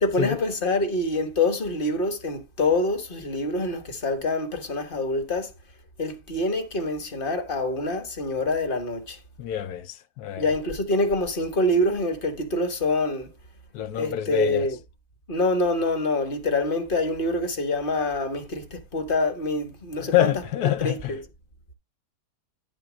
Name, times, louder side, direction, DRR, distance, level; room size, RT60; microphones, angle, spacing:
voice 1, 0.0-5.5 6.0-9.2 10.4-13.3 14.0-14.8 15.3-21.3, left 2 dB, 35° left, 1.4 m, -26 dB
voice 2, 9.4-10.5 13.7-14.7 20.1-21.1, left 12 dB, 90° left, 1.2 m, -26 dB
10.5 x 3.6 x 6.1 m
omnidirectional pair, 1.6 m